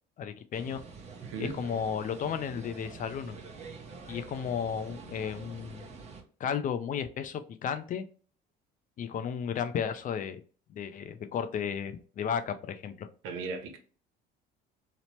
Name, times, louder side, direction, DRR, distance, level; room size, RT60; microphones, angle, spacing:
voice 1, 0.2-0.8 1.4-3.4 4.1-5.9 6.4-8.1 9.0-10.4 10.7-13.1, left 7 dB, 40° left, 0.4 m, -33 dB
sound 1, 0.5-6.2, right 4 dB, 35° right, 0.7 m, -46 dB
voice 2, 1.2-1.6 13.2-13.8, right 4 dB, 80° right, 0.7 m, -37 dB
2.9 x 2.0 x 3.0 m
supercardioid pair, 95°, 21 cm